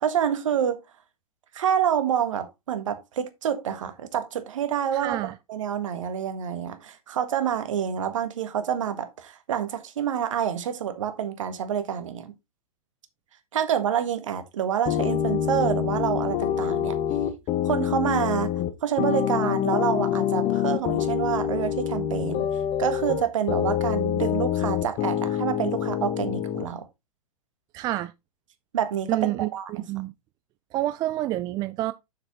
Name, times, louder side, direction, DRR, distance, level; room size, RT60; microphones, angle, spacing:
voice 1, 0.0-0.8 1.5-12.3 13.5-17.0 17.6-18.5 18.8-22.5 22.8-26.8 28.7-29.6, right 9 dB, 60° right, 1.5 m, -27 dB
voice 2, 4.9-5.3 27.7-28.1 29.1-30.1 30.7-31.9, right 15 dB, 20° right, 0.4 m, -28 dB
sound 1, 14.9-26.7, left 10 dB, 30° left, 0.9 m, -26 dB
7.1 x 6.5 x 3.8 m
figure-of-eight pair, 105°, 18 cm